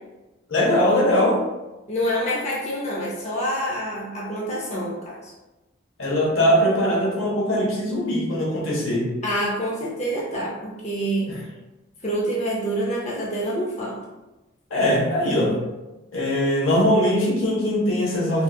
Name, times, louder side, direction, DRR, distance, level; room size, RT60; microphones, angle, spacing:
voice 1, 0.5-1.4 6.0-9.1 11.3-11.4 14.7-15.6 16.1-18.4, equal, 85° left, -2 dB, 0.9 m, -21 dB
voice 2, 1.9-5.3 9.2-11.4 12.0-14.0, equal, 35° left, -4 dB, 0.6 m, -27 dB
3.8 x 2.4 x 2.3 m, 1.1 s
head